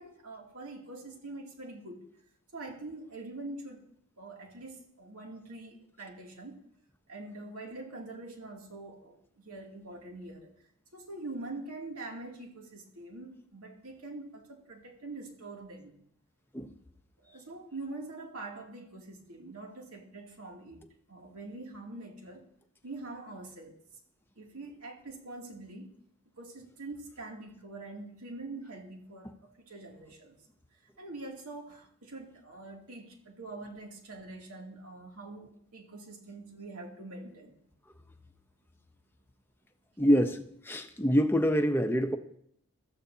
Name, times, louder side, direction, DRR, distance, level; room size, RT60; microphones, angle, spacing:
voice 1, 0.0-2.1 2.5-3.8 4.2-6.6 7.1-10.5 10.9-15.9 17.2-20.8 21.1-22.5 22.8-23.8 24.4-25.9 26.4-30.4 31.0-37.5, right 2 dB, 85° right, 0 dB, 2.6 m, -44 dB
voice 2, 40.0-42.2, equal, 10° left, 6 dB, 0.7 m, -26 dB
21.5 x 14.0 x 2.8 m, 0.68 s
head